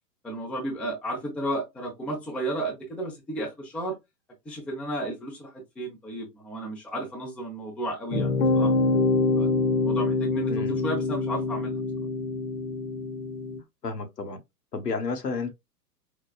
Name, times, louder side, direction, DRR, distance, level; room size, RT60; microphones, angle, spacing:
voice 1, 0.2-3.9 4.4-8.7 9.3-9.5 9.8-11.8, right 1 dB, ahead, 0.6 m, -33 dB
sound 1, 8.1-13.6, left 3 dB, 50° left, 1.0 m, -25 dB
voice 2, 13.8-14.4 14.7-15.5, left 4 dB, 75° left, 1.0 m, -31 dB
4.7 x 2.1 x 2.2 m
figure-of-eight pair, 105°, 49 cm